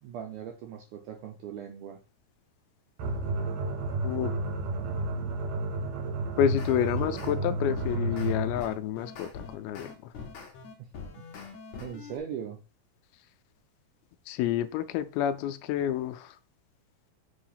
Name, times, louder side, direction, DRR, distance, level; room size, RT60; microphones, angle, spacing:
voice 1, 0.0-2.0 10.8-10.9 11.2-11.3 11.8-12.6, right 8 dB, 85° right, 3 dB, 1.8 m, -40 dB
sound 1, 3.0-8.7, right 2 dB, 65° right, 1.7 m, -31 dB
voice 2, 6.4-9.9 14.3-16.3, left 10 dB, 85° left, 11 dB, 2.4 m, -29 dB
sound 2, 6.6-7.3 7.8-12.2, left 5 dB, 60° left, 2.1 m, -43 dB
6.5 x 2.8 x 5.6 m, 0.35 s
omnidirectional pair, 4.4 m